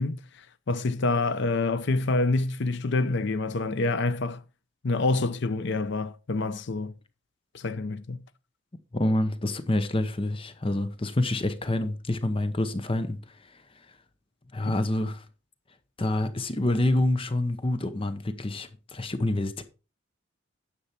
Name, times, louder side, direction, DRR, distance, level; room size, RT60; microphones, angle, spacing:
voice 1, 0.0-4.4 4.8-6.9 7.5-8.2 14.7-14.8, left 3 dB, 60° left, 0.6 m, -27 dB
voice 2, 8.9-13.6 14.5-15.2 16.0-19.6, left 1 dB, 25° left, 0.8 m, -27 dB
10.0 x 7.0 x 4.3 m
head